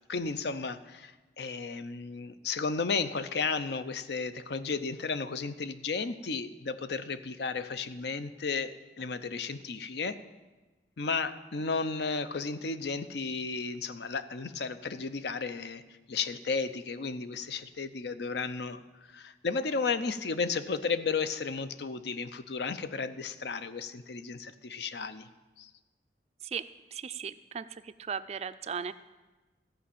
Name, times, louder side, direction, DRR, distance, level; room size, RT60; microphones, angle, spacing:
voice 1, 0.1-10.2 11.0-15.8 16.1-25.3 25.6-25.7, left 4 dB, 70° left, 12 dB, 0.6 m, -33 dB
voice 2, 26.4-27.6 28.1-28.9, right 7 dB, 35° right, 13 dB, 0.3 m, -37 dB
14.0 x 5.2 x 8.5 m, 1.2 s
head